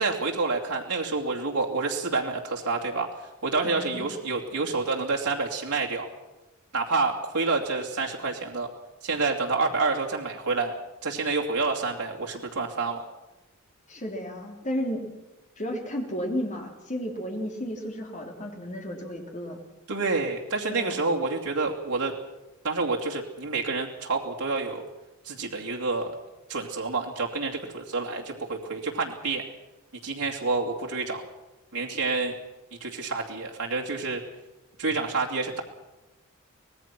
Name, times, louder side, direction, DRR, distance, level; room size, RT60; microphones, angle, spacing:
voice 1, 0.0-6.1 6.7-8.7 9.0-10.7 11.0-13.0 19.9-22.1 22.6-24.8 25.2-26.1 26.5-29.4 30.0-31.2 31.7-32.4 32.8-34.2 34.8-35.6, right 3 dB, 85° right, -1 dB, 2.7 m, -28 dB
voice 2, 3.6-4.1 13.9-15.1 15.6-19.6 20.7-20.9, equal, 35° left, 2 dB, 3.5 m, -33 dB
24.5 x 19.0 x 6.1 m, 1.0 s
head